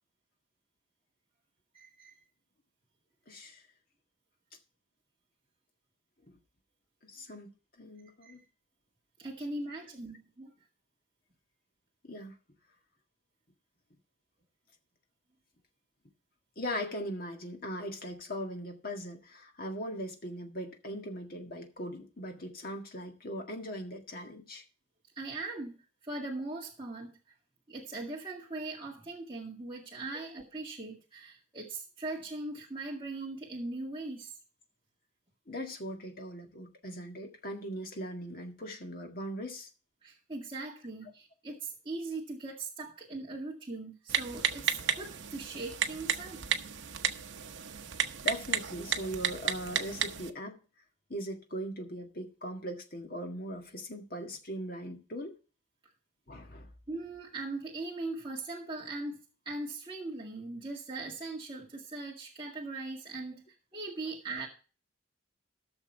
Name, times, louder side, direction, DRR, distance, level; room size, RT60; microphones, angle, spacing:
voice 1, 1.7-2.2 8.2-8.5 9.2-10.5 25.2-27.2 27.7-34.3 40.0-46.4 56.9-63.4 63.7-64.5, right 2 dB, 25° right, 1.9 m, -40 dB
voice 2, 3.3-3.7 6.3-6.4 7.0-7.5 7.8-8.4 12.0-12.4 16.6-24.6 35.5-39.7 48.2-50.6 51.1-55.4 56.3-56.7, equal, 45° left, 1.9 m, -40 dB
Typing, 44.1-50.3, right 7 dB, 65° right, 0.9 m, -33 dB
15.0 x 6.5 x 4.4 m
head